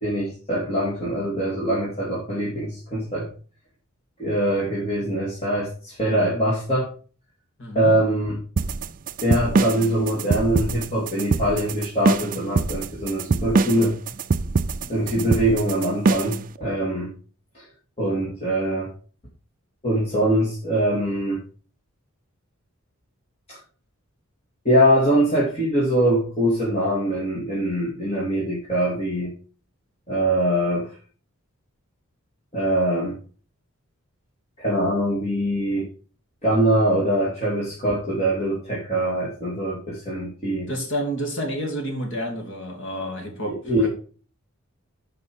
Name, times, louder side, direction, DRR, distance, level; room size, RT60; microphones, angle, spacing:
voice 1, 0.0-3.3 4.2-6.9 7.7-8.4 9.2-13.9 14.9-17.1 17.5-17.6 18.0-18.9 19.8-21.4 23.5-23.6 24.6-29.3 30.1-30.9 32.5-33.2 34.6-35.9 36.4-40.7 43.4-43.9, right 1 dB, 25° left, -5 dB, 2.5 m, -23 dB
voice 2, 7.6-8.0 40.7-43.9, equal, 55° left, 3 dB, 2.5 m, -29 dB
sound 1, 8.6-16.4, right 4 dB, 35° right, 0.4 m, -23 dB
9.9 x 5.3 x 4.7 m, 0.39 s
head